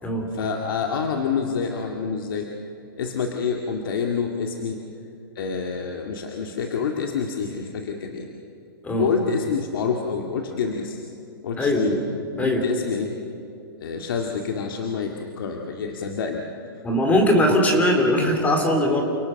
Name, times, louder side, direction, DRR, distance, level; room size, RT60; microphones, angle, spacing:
voice 1, 0.3-2.5 3.0-4.8 5.4-8.3 9.0-11.0 11.4-12.0 12.4-13.2 13.8-16.4 16.7-16.8, left 5 dB, 65° left, 2 dB, 2.2 m, -27 dB
voice 2, 16.8-19.0, left 1 dB, 10° left, 3 dB, 3.3 m, -20 dB
29.5 x 18.5 x 6.6 m, 2.8 s
hypercardioid pair, 150°, 12 cm